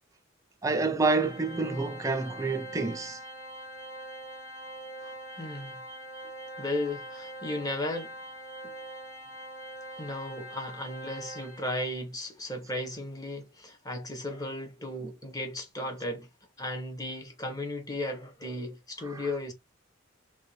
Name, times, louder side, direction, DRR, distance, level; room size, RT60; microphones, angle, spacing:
voice 1, 0.6-3.2 19.1-19.3, right 3 dB, 15° right, 0.4 m, -28 dB
Organ, 1.2-11.9, right 1 dB, 45° left, 1.3 m, -43 dB
voice 2, 5.4-5.8 6.6-8.2 10.0-16.3 16.6-19.5, left 1 dB, 20° left, 0.8 m, -35 dB
2.6 x 2.2 x 3.1 m
head